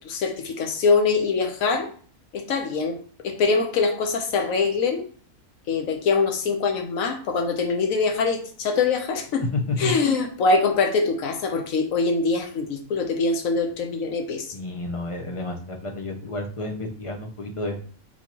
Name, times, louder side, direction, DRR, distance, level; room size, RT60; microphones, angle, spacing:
voice 1, 0.0-1.9 2.3-3.0 3.2-5.1 5.7-9.5 9.8-14.5, left 4 dB, 85° left, 5 dB, 1.2 m, -23 dB
voice 2, 9.5-10.1 14.5-17.9, left 2 dB, 50° left, 2 dB, 0.4 m, -30 dB
4.4 x 4.2 x 2.9 m, 0.44 s
omnidirectional pair, 1.4 m